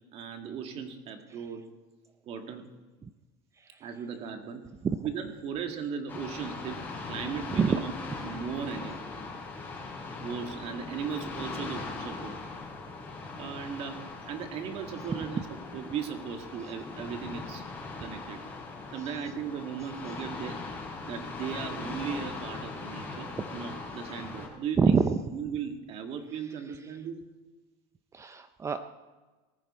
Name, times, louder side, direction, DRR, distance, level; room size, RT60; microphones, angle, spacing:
voice 1, 0.1-1.7 2.3-2.7 3.8-4.7 5.0-6.8 7.1-7.9 8.2-9.0 10.2-12.4 13.4-15.4 15.7-17.6 18.0-18.4 18.9-20.6 21.0-25.0 25.3-27.2, right 7 dB, 45° right, 6 dB, 2.0 m, -37 dB
sound 1, 6.1-24.5, left 3 dB, 15° left, 5.9 m, -40 dB
voice 2, 24.8-25.2 28.1-28.8, right 5 dB, 20° right, 10 dB, 0.6 m, -26 dB
18.5 x 14.5 x 4.4 m, 1.2 s
supercardioid pair, 120°, 14 cm